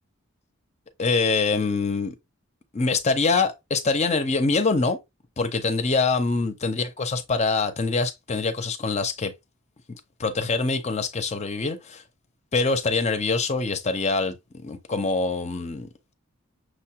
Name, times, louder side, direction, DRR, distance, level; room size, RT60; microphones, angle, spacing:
voice 1, 1.0-2.1 2.7-5.0 5.4-9.3 10.2-12.0 12.5-14.3 14.6-15.9, left 4 dB, 35° left, 0.6 m, -24 dB
6.3 x 2.3 x 2.8 m
head